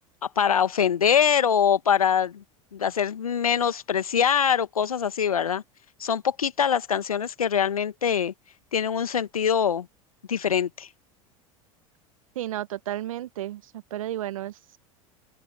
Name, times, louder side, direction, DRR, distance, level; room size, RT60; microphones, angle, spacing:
voice 1, 0.4-2.4 2.7-5.6 6.0-8.3 8.7-9.9 10.3-10.9, left 8 dB, 85° left, 1.4 m, -23 dB
voice 2, 12.3-14.8, right 13 dB, 75° right, 1.5 m, -33 dB
open air
hypercardioid pair, 80°, 18 cm